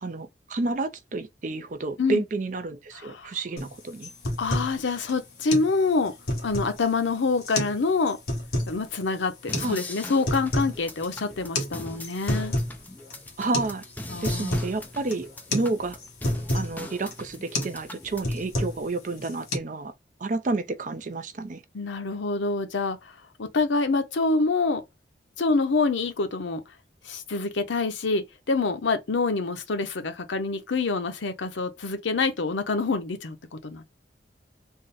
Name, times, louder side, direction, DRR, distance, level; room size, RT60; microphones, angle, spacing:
voice 1, 0.0-4.1 9.6-9.8 13.4-13.8 14.2-16.0 16.5-19.9 20.2-21.6, right 3 dB, 45° right, 0.5 m, -30 dB
voice 2, 3.0-3.3 4.4-6.1 6.4-8.2 8.7-12.5 14.1-14.6 21.7-23.0 23.4-24.8 25.4-26.6 27.0-33.8, left 3 dB, 90° left, 0.7 m, -26 dB
sound 1, 3.6-3.7 4.0-4.8 5.1-5.2 5.5-5.7 6.1-6.8 7.4-7.8 8.1-8.7 9.5-9.7 10.1-10.8 11.1-11.2 11.6-11.7 12.0-12.8 13.1-13.2 13.5-13.8 14.0-14.7 15.1-15.3 15.5-15.7 16.0-16.7 17.1-17.3 17.5-17.8 18.1-18.9 19.2-19.6, left 1 dB, 55° left, 1.1 m, -28 dB
sound 2, 9.5-18.4, left 2 dB, 10° left, 0.5 m, -41 dB
3.7 x 2.1 x 3.9 m
head